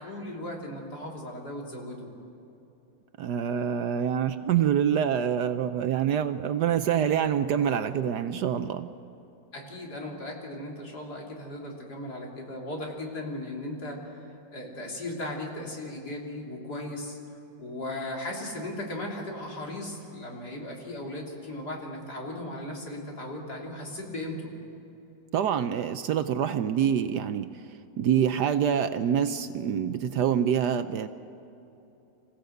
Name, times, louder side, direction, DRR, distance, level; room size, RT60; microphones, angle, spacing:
voice 1, 0.0-2.1 9.5-17.2 17.6-24.5, left 1 dB, 55° left, -1 dB, 3.9 m, -37 dB
voice 2, 3.2-8.9 25.3-27.5 28.0-31.1, right 8 dB, 70° right, 10 dB, 1.2 m, -26 dB
26.5 x 16.5 x 7.9 m, 3.0 s
omnidirectional pair, 2.0 m